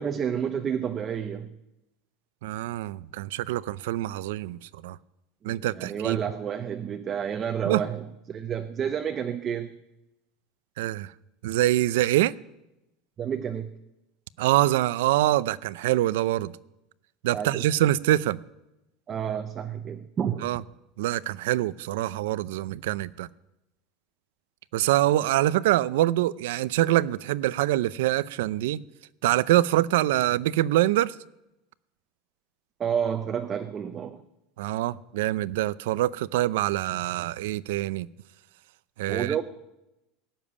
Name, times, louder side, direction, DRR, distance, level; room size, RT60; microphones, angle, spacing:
voice 1, 0.0-1.5 5.5-9.7 13.2-13.7 17.3-17.7 19.1-20.5 32.8-34.2 39.1-39.4, right 8 dB, 20° right, 0.6 m, -30 dB
voice 2, 2.4-4.6 4.8-5.0 5.4-6.2 7.6-7.8 10.8-11.1 11.4-12.3 14.4-16.5 17.2-18.4 20.4-20.6 21.0-23.3 24.7-28.8 29.2-31.1 34.6-38.1 39.0-39.4, right 15 dB, 85° right, 0.5 m, -25 dB
17.5 x 7.2 x 9.8 m
cardioid pair, 175°, 0 cm